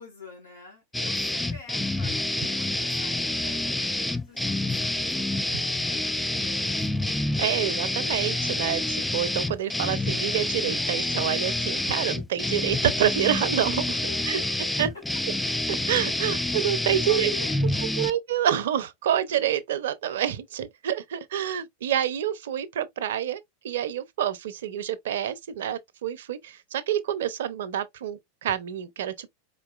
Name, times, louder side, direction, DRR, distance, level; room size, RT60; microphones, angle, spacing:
voice 1, 0.0-6.8 14.0-14.9 16.2-16.4 17.0-17.9, left 5 dB, 85° left, 2.7 m, -46 dB
sound 1, 0.9-18.1, left 1 dB, 5° left, 0.4 m, -28 dB
voice 2, 7.4-14.0 14.2-14.4 14.8-14.9 15.7-17.3 17.8-23.4 23.6-29.3, right 10 dB, 70° right, 0.6 m, -27 dB
4.4 x 3.8 x 2.3 m
hypercardioid pair, 95°, 0 cm